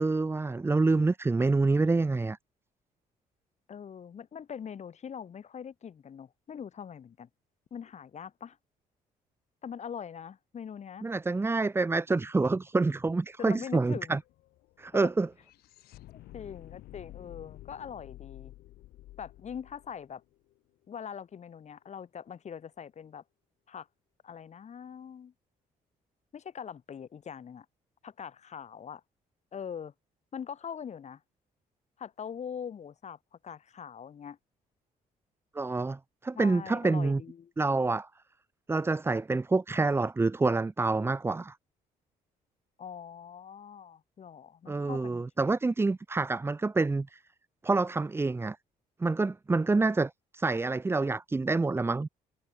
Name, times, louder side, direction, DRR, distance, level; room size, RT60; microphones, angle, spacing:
voice 1, 0.0-2.4 11.0-14.2 14.8-15.3 35.5-37.2 37.6-38.1 38.7-41.6 44.7-47.2 47.6-48.6 49.0-52.1, right 3 dB, 15° right, 0.7 m, -27 dB
voice 2, 3.7-7.3 7.7-8.6 9.6-11.0 13.4-14.2 16.1-18.5 19.2-20.2 20.9-23.2 23.7-23.9 24.2-25.3 26.3-27.7 28.0-29.0 29.5-29.9 30.3-31.2 32.0-34.4 36.3-37.5 42.8-45.3, left 7 dB, 45° left, 4.7 m, -42 dB
sound 1, 12.6-12.7 12.9-21.1, left 16 dB, 90° left, 6.7 m, -51 dB
cardioid pair, 105°, 16 cm